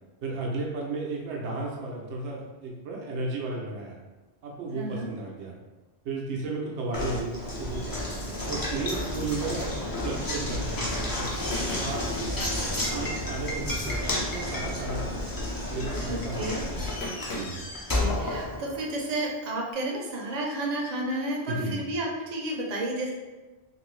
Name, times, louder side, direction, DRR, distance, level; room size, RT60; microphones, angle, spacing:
voice 1, 0.2-4.0 4.4-5.6 6.0-9.7 10.0-11.3 11.8-12.4 12.9-15.3 15.7-16.9 17.3-17.6 21.5-21.8, right 3 dB, 85° right, -1 dB, 0.9 m, -34 dB
voice 2, 4.7-5.1 16.1-16.6 17.9-23.1, right 1 dB, 45° right, -2 dB, 0.6 m, -31 dB
Knock, 6.9-19.1, left 1 dB, 30° left, 0.4 m, -31 dB
sound 1, 10.6-17.4, left 1 dB, 75° left, 1.0 m, -40 dB
2.6 x 2.6 x 3.1 m, 1.2 s
omnidirectional pair, 1.1 m